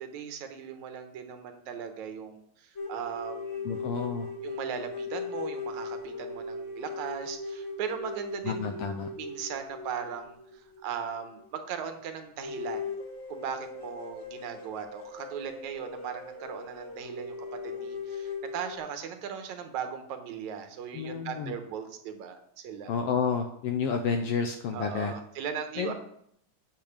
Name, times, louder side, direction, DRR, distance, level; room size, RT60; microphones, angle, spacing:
voice 1, 0.0-3.7 4.4-12.9 13.3-17.4 17.6-22.9 24.7-25.9, right 7 dB, 80° right, 7 dB, 2.4 m, -38 dB
sound 1, 2.8-11.4 11.8-11.9 12.4-18.8, left 3 dB, 30° left, 1.5 m, -39 dB
voice 2, 3.6-4.3 8.4-9.1 20.9-21.5 22.9-25.1 25.8-25.9, left 6 dB, 75° left, 6 dB, 1.4 m, -30 dB
8.7 x 5.4 x 7.1 m, 0.69 s
omnidirectional pair, 3.3 m